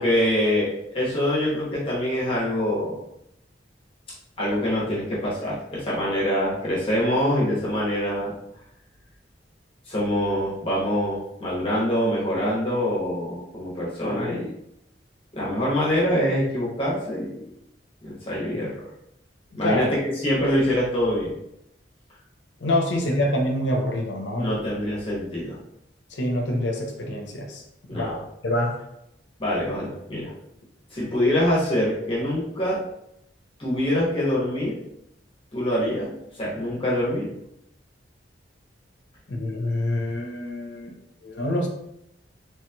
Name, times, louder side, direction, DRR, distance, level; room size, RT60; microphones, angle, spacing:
voice 1, 0.0-3.0 4.4-8.3 9.9-14.5 15.3-17.3 18.0-18.7 19.5-21.3 24.4-25.6 27.9-28.1 29.4-30.3 30.9-32.8 33.6-34.8 35.5-36.1 36.4-37.3, equal, 30° left, -6 dB, 1.0 m, -24 dB
voice 2, 22.6-24.6 26.1-27.6 27.9-28.2 28.4-28.8 39.3-40.9 41.2-41.7, left 1 dB, 80° left, 1 dB, 0.7 m, -26 dB
3.2 x 3.0 x 2.2 m, 0.79 s
head